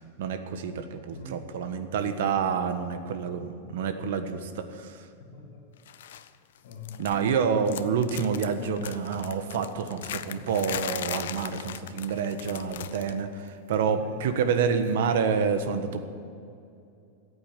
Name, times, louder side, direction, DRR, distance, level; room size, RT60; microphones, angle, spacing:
voice 1, 0.0-5.0 7.0-16.1, right 6 dB, 65° right, 8 dB, 1.4 m, -28 dB
voice 2, 5.2-5.7 6.1-7.3 13.7-15.0, left 3 dB, 55° left, -4 dB, 2.7 m, -44 dB
sound 1, 5.9-6.3 6.6-7.4 7.6-13.2 13.5-13.7 14.8-14.9, left 11 dB, 80° left, 0.7 m, -39 dB
14.0 x 8.6 x 9.0 m, 2.5 s
supercardioid pair, 180°, 0 cm